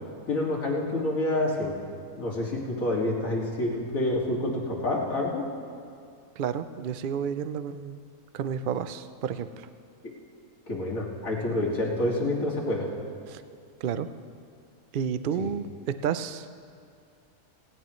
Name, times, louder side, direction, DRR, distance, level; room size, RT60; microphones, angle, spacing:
voice 1, 0.3-1.7 2.2-5.4 10.7-12.9 15.4-15.5, left 1 dB, 60° left, -3 dB, 2.7 m, -28 dB
voice 2, 6.4-8.0 8.3-9.7 13.3-13.4 13.8-14.1 14.9-15.6 16.0-16.5, right 8 dB, 80° right, 11 dB, 0.4 m, -31 dB
18.5 x 16.5 x 3.1 m, 2.4 s
omnidirectional pair, 1.6 m